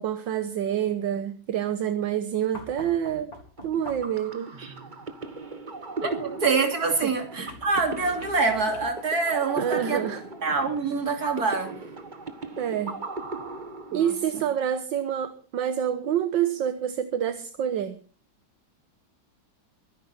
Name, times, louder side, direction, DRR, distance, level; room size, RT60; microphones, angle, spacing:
voice 1, 0.0-3.3 3.6-4.5 9.6-10.2 12.6-13.0 13.9-18.0, right 9 dB, 70° right, 11 dB, 1.7 m, -27 dB
sound 1, 2.5-4.3 7.5-9.2 10.8-10.9, left 3 dB, 50° left, 2.9 m, -46 dB
sound 2, 3.6-14.4, right 3 dB, 25° right, 1.4 m, -38 dB
voice 2, 6.0-10.0 10.4-11.7 13.9-14.4, right 4 dB, 50° right, 4 dB, 3.3 m, -26 dB
23.5 x 10.5 x 4.2 m, 0.38 s
omnidirectional pair, 2.1 m